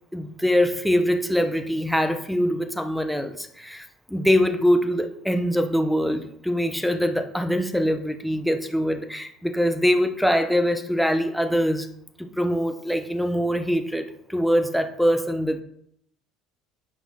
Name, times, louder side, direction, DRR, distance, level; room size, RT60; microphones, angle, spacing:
voice 1, 0.1-11.9 12.2-15.6, equal, ahead, 7 dB, 1.0 m, -23 dB
8.7 x 5.6 x 4.2 m, 0.70 s
hypercardioid pair, 75°, 0 cm